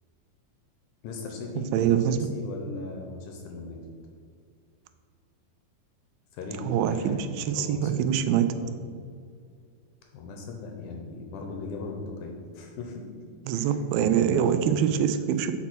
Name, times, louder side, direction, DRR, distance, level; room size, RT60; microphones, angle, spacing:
voice 1, 1.0-3.8 6.3-8.1 8.5-8.7 10.1-13.1 13.5-14.5, left 3 dB, 75° left, 1 dB, 2.1 m, -38 dB
voice 2, 1.7-2.2 6.6-8.5 13.5-15.5, right 9 dB, 90° right, 10 dB, 2.4 m, -24 dB
7.3 x 4.2 x 6.0 m, 2.2 s
omnidirectional pair, 4.1 m